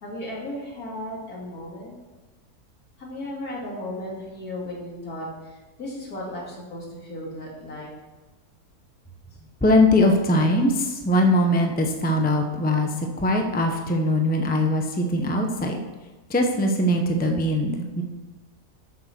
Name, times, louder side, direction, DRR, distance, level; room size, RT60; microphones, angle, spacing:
voice 1, 0.0-2.0 3.0-7.9, left 1 dB, 70° left, -4 dB, 3.1 m, -35 dB
voice 2, 9.6-15.8 16.3-18.0, left 1 dB, 10° left, 3 dB, 0.7 m, -21 dB
8.7 x 6.8 x 6.0 m, 1.2 s
omnidirectional pair, 1.6 m